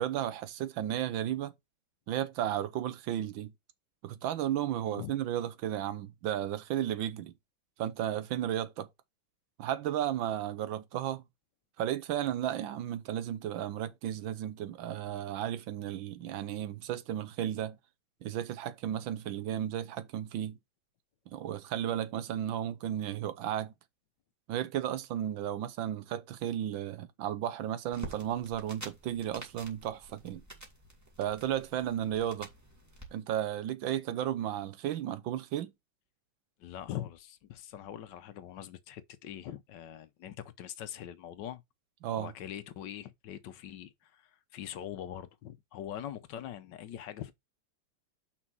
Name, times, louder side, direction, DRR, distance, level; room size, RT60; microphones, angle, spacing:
voice 1, 0.0-1.5 2.1-3.5 4.0-7.3 7.8-8.9 9.6-11.2 11.8-17.8 18.2-20.6 21.3-23.7 24.5-30.4 31.2-32.5 33.1-35.7 42.0-42.3, right 11 dB, 80° right, 1.5 m, -34 dB
sound 1, 27.9-33.1, right 1 dB, 10° right, 2.1 m, -49 dB
voice 2, 36.6-41.6 42.2-47.3, left 11 dB, 70° left, 1.3 m, -43 dB
5.9 x 4.3 x 6.0 m
omnidirectional pair, 2.1 m